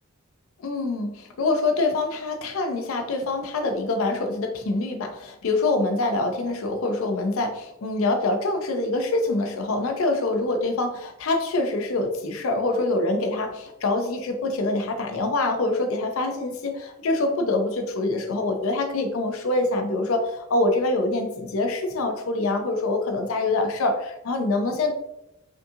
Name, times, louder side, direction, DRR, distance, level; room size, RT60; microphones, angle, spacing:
voice 1, 0.6-24.9, left 2 dB, 75° left, 5 dB, 0.5 m, -25 dB
5.2 x 2.7 x 2.4 m, 0.88 s
head